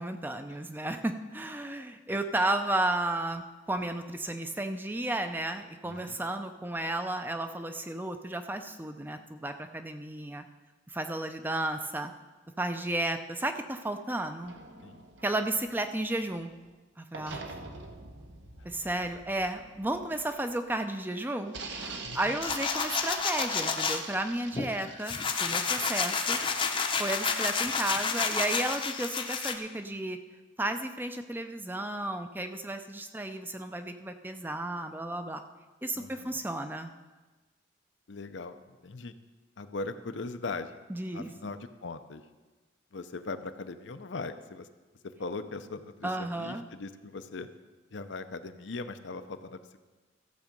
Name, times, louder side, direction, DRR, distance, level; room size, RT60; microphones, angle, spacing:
voice 1, 0.0-3.4 3.7-10.4 10.9-12.1 12.6-14.5 15.2-16.5 17.0-17.4 18.6-26.4 27.0-30.2 30.6-35.4 35.8-36.9 40.9-41.3 46.0-46.6, right 1 dB, 10° right, 7 dB, 0.5 m, -33 dB
voice 2, 5.8-6.2 14.8-15.0 22.0-22.4 35.9-36.4 38.1-39.1 39.6-40.8 41.1-42.2 42.9-44.7 45.2-47.5 47.9-49.6, left 3 dB, 75° left, 9 dB, 0.7 m, -39 dB
sound 1, 14.4-16.7 17.1-20.8 21.5-27.3, right 3 dB, 70° right, 1.2 m, -45 dB
sound 2, 22.4-24.0 24.5-29.5, left 5 dB, 25° left, 0.7 m, -30 dB
15.0 x 7.3 x 5.3 m, 1.2 s
head